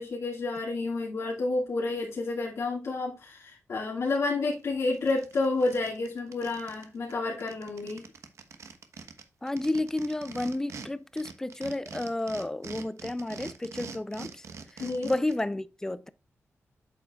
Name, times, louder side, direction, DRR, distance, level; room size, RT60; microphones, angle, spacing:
voice 1, 0.0-8.0 14.8-15.1, left 3 dB, 70° left, 2.3 m, -30 dB
sound 1, 4.5-4.6 4.9-6.8 7.1-7.2 7.4-10.9 11.2-15.4, right 5 dB, 85° right, 1.1 m, -44 dB
voice 2, 9.4-14.5 14.7-16.1, left 2 dB, 10° left, 0.4 m, -31 dB
8.7 x 7.5 x 2.3 m
wide cardioid pair, 145°, 5 cm